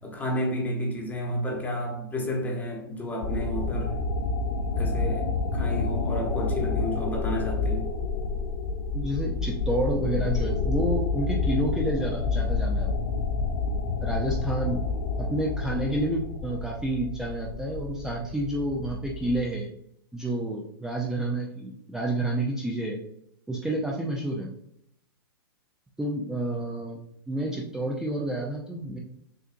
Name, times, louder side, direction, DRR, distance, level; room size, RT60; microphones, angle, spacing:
voice 1, 0.0-4.0 4.8-7.9, equal, 15° left, 1.1 m, -31 dB
sound 1, 3.2-19.4, left 4 dB, 65° left, 0.7 m, -29 dB
voice 2, 8.9-12.9 14.0-14.8 15.2-19.7 20.1-23.0 23.5-24.5 26.0-27.0 27.3-29.0, right 1 dB, 5° right, 0.5 m, -29 dB
6.3 x 2.6 x 2.5 m
hypercardioid pair, 115°, 13 cm